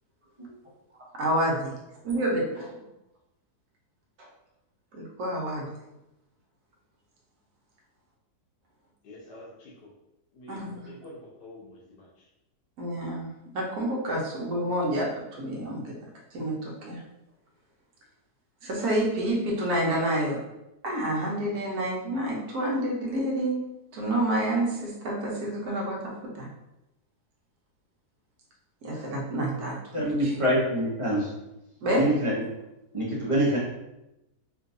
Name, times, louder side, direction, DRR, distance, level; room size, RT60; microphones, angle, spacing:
voice 1, 1.1-1.7 2.0-2.7 4.2-4.3 4.9-5.7 10.5-10.8 12.8-13.3 13.5-15.9 16.3-17.0 18.6-20.4 20.8-23.6 23.9-26.5 28.8-30.4 31.8-32.0, right 1 dB, 75° right, -2 dB, 1.4 m, -28 dB
voice 2, 9.0-9.9 10.3-12.3, left 1 dB, 85° left, -5 dB, 1.4 m, -47 dB
voice 3, 29.9-31.3 31.9-32.3 32.9-33.6, equal, 25° right, -6 dB, 0.8 m, -25 dB
3.7 x 2.6 x 2.6 m, 0.92 s
omnidirectional pair, 1.7 m